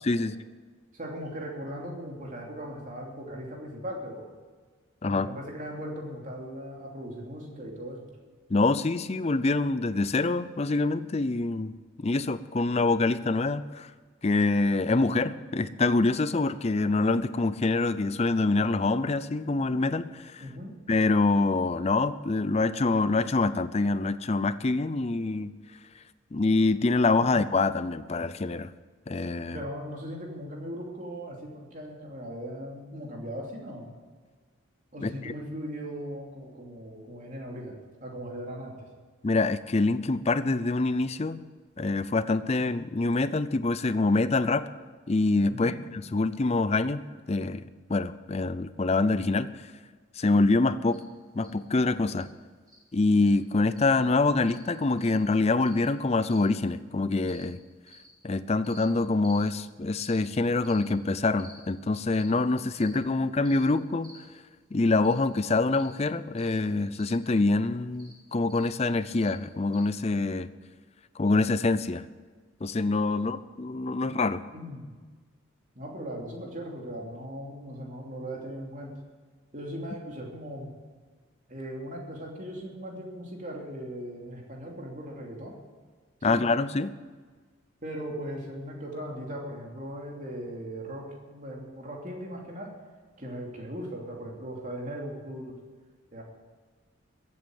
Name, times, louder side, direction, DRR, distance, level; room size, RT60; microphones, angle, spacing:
voice 1, 0.9-4.3 5.0-8.1 20.4-20.7 27.1-27.3 29.5-34.0 34.9-38.9 45.5-45.8 73.1-73.3 74.5-74.9 75.7-78.9 79.5-80.7 81.5-85.5 86.2-86.4 87.8-92.7 93.2-95.6 96.1-96.2, equal, 35° right, 0 dB, 2.9 m, -38 dB
voice 2, 8.5-11.8 12.0-13.9 14.2-20.4 20.9-25.5 26.3-28.7 29.1-29.6 35.0-35.3 39.2-41.4 41.8-44.7 45.1-45.7 46.1-49.5 50.2-51.0 51.3-52.3 52.9-57.6 58.2-64.1 64.7-70.5 71.2-72.1 72.6-74.4 86.2-86.9, left 3 dB, 30° left, 14 dB, 0.5 m, -25 dB
sound 1, 50.9-51.0 51.4-51.5 52.2-52.3 52.7-52.8 53.2-53.3 53.7-53.9 54.4-54.6 55.0-55.2 55.6-55.8 56.2-56.5 57.2-57.4 57.9-58.1 58.6-58.8 59.2-59.4 60.0-60.2 60.6-60.8 61.4-61.6 62.1-62.3 62.7-63.0 63.4-63.6 64.0-64.2 65.0-65.2 65.7-65.9 66.4-66.5 66.9-67.1 67.9-68.1 68.5-68.7 69.2-69.3 69.7-69.9, equal, 20° right, 5.6 m, -52 dB
14.5 x 8.6 x 9.0 m, 1.5 s
head